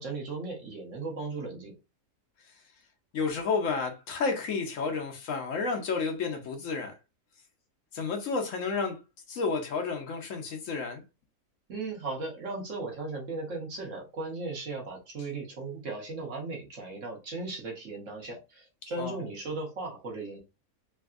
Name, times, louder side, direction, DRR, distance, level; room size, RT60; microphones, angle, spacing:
voice 1, 0.0-1.7 11.7-20.4, right 3 dB, 60° right, 1.3 m, -37 dB
voice 2, 3.1-6.9 7.9-9.0 9.3-11.0 19.0-19.2, left 4 dB, 65° left, 1.0 m, -31 dB
3.3 x 2.7 x 2.4 m
omnidirectional pair, 1.6 m